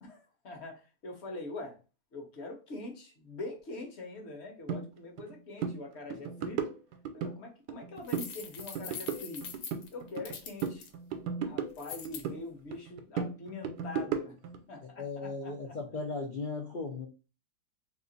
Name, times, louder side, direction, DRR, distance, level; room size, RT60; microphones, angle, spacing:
voice 1, 0.0-1.8 2.1-6.6 7.1-9.5 9.9-10.9 11.4-14.4 14.7-15.8, left 2 dB, 50° left, 2 dB, 1.0 m, -43 dB
sound 1, 4.7-4.8 5.2-5.3 5.6-5.8 6.1-7.3 7.7-8.3 8.6-10.3 10.6-12.4 12.7-14.6, right 7 dB, 80° right, 1.2 m, -35 dB
sound 2, 8.0-10.9 11.8-12.2, left 6 dB, 70° left, 1.1 m, -43 dB
voice 2, 15.0-17.1, left 3 dB, 90° left, -1 dB, 0.4 m, -37 dB
2.8 x 2.4 x 3.8 m, 0.32 s
omnidirectional pair, 1.8 m